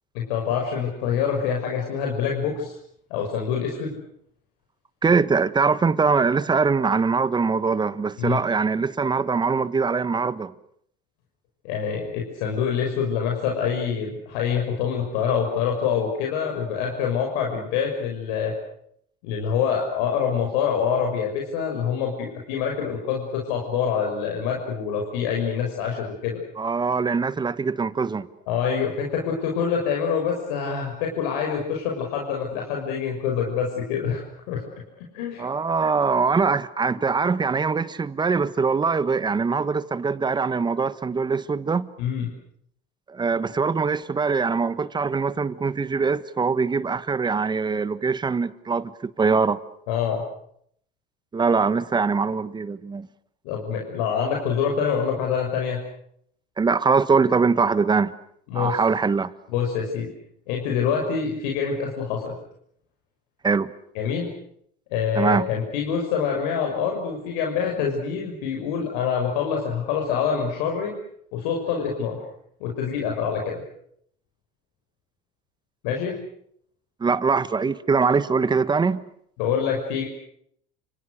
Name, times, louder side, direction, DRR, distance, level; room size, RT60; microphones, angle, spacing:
voice 1, 0.1-2.8 3.1-3.9 8.2-8.4 11.6-18.5 19.2-26.4 28.5-34.6 35.0-35.4 42.0-42.3 49.9-50.2 53.4-55.8 58.5-58.8 59.5-60.1 60.5-62.4 63.9-64.3 64.9-70.9 71.3-72.2 72.6-73.6 75.8-76.2 79.4-80.0, left 7 dB, 85° left, 6.1 m, -26 dB
voice 2, 5.0-10.5 26.6-28.3 35.4-41.9 43.1-49.6 51.3-53.1 56.6-58.1 58.5-59.3 63.4-63.7 65.1-65.5 77.0-79.0, right 5 dB, 20° right, 1.3 m, -22 dB
29.5 x 26.5 x 6.6 m
supercardioid pair, 110°, 21 cm